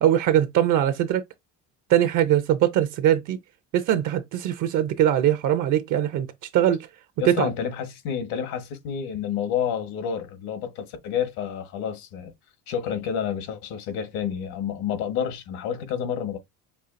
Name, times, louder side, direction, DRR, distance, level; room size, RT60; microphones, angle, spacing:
voice 1, 0.0-1.2 1.9-3.4 3.7-6.3 6.5-6.8 7.3-7.5, right 11 dB, 55° right, 0.7 m, -21 dB
voice 2, 7.2-12.3 12.7-16.4, left 8 dB, 80° left, 1.4 m, -29 dB
5.5 x 2.3 x 2.6 m
cardioid pair, 120°, 36 cm